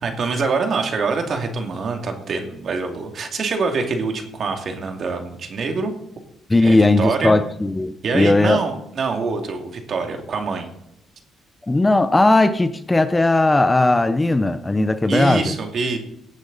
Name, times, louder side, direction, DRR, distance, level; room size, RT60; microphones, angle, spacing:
voice 1, 0.0-5.9 6.6-7.4 8.0-10.7 15.1-16.0, right 4 dB, 55° right, 4 dB, 2.4 m, -25 dB
voice 2, 6.5-8.6 11.7-15.5, left 2 dB, 15° left, 11 dB, 0.8 m, -17 dB
18.0 x 8.9 x 4.1 m, 0.80 s
cardioid pair, 90°, 0 cm